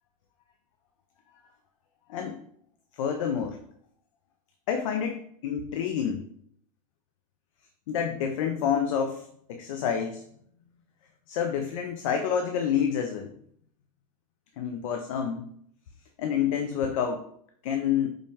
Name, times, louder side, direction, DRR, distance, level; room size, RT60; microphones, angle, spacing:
voice 1, 2.1-2.4 3.0-3.6 4.7-6.2 7.9-10.2 11.3-13.3 14.6-15.5 16.2-17.2 17.6-18.1, left 8 dB, 70° left, 4 dB, 0.4 m, -28 dB
4.6 x 2.2 x 2.8 m, 0.68 s
supercardioid pair, 170°, 18 cm